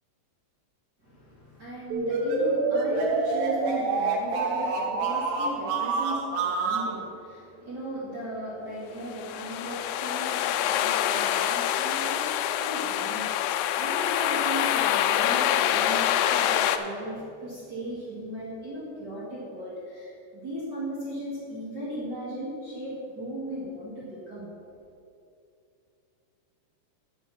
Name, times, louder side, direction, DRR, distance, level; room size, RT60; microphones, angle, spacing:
voice 1, 1.0-13.3 13.8-24.5, right 1 dB, 35° right, -9 dB, 2.0 m, -37 dB
sound 1, 1.9-6.9, right 3 dB, 85° right, 3.2 m, -27 dB
sound 2, 9.1-16.8, left 11 dB, 80° left, 2.4 m, -26 dB
10.5 x 6.3 x 6.1 m, 2.6 s
omnidirectional pair, 4.7 m